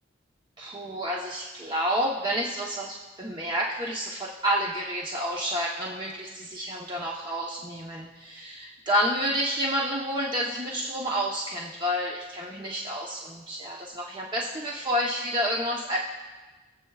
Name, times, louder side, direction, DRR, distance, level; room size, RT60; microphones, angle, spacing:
voice 1, 0.6-16.0, equal, 25° right, -3 dB, 1.0 m, -29 dB
23.0 x 8.0 x 2.4 m, 1.2 s
head